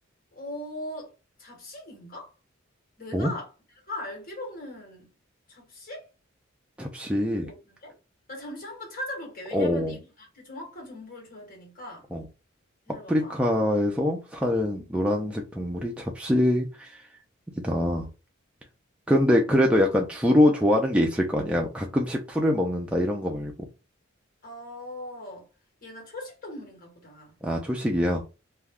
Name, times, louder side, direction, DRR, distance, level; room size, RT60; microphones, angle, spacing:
voice 1, 0.3-1.1 1.4-2.3 3.0-3.5 3.9-5.1 5.5-6.1 7.4-8.0 8.3-12.1 12.9-13.4 14.7-14.9 24.4-25.5 25.8-27.3, left 1 dB, 45° left, 1.3 m, -40 dB
voice 2, 6.8-7.5 9.5-10.0 12.1-12.2 13.1-17.0 17.6-18.1 19.1-23.5 27.4-28.2, left 1 dB, 5° right, 0.3 m, -24 dB
2.4 x 2.2 x 3.4 m
head